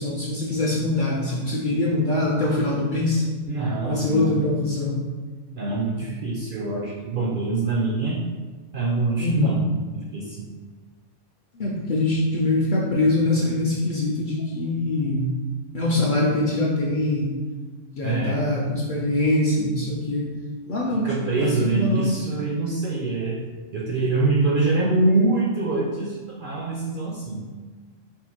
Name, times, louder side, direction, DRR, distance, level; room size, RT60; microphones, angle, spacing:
voice 1, 0.0-3.3 3.8-5.0 9.2-9.6 11.5-15.4 15.7-17.4 18.0-20.3 20.7-22.2, left 2 dB, 60° left, -4 dB, 0.5 m, -23 dB
voice 2, 3.5-4.3 5.6-8.2 8.7-9.6 10.1-10.5 18.0-18.4 21.0-23.4 23.7-27.4, right 3 dB, 60° right, -2 dB, 0.5 m, -24 dB
3.7 x 2.4 x 4.2 m, 1.4 s
omnidirectional pair, 1.3 m